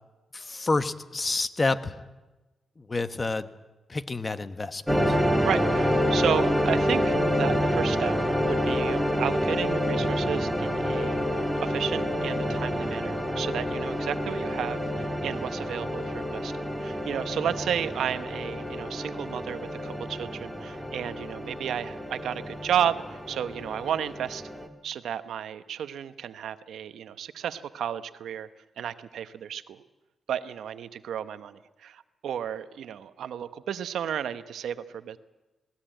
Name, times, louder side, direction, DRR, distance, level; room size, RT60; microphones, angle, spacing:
voice 1, 0.3-2.1 2.8-3.5 3.9-5.2, left 3 dB, 30° left, 12 dB, 1.1 m, -29 dB
sound 1, 4.9-24.7, equal, ahead, 2.2 m, -28 dB
voice 2, 5.4-24.4 24.8-28.5 28.8-29.8 30.3-35.2, right 9 dB, 85° right, 12 dB, 0.9 m, -33 dB
19.5 x 18.0 x 9.0 m, 1.1 s
cardioid pair, 75°, 0 cm